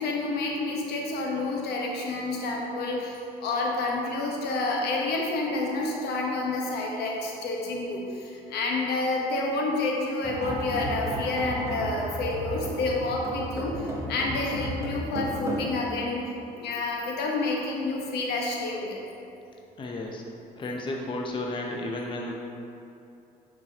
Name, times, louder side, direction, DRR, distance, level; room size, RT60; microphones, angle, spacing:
voice 1, 0.0-3.1 3.4-13.8 14.1-16.3 16.5-18.9, left 2 dB, 75° left, -1 dB, 1.1 m, -29 dB
sound 1, 10.2-15.7, right 1 dB, 15° right, 0.9 m, -33 dB
voice 2, 19.8-20.2 20.6-22.3, left 2 dB, 30° left, 0 dB, 0.7 m, -33 dB
9.9 x 4.6 x 2.9 m, 2.7 s
cardioid pair, 110°, 17 cm